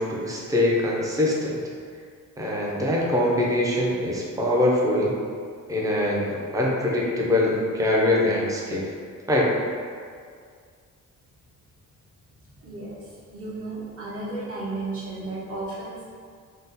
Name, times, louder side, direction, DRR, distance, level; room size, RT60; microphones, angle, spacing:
voice 1, 0.0-1.6 2.4-5.2 5.7-8.8 9.3-9.6, left 1 dB, 10° right, -3 dB, 0.3 m, -23 dB
voice 2, 12.6-16.1, right 2 dB, 45° right, -7 dB, 0.8 m, -34 dB
2.6 x 2.0 x 3.6 m, 2.1 s
wide cardioid pair, 160°, 32 cm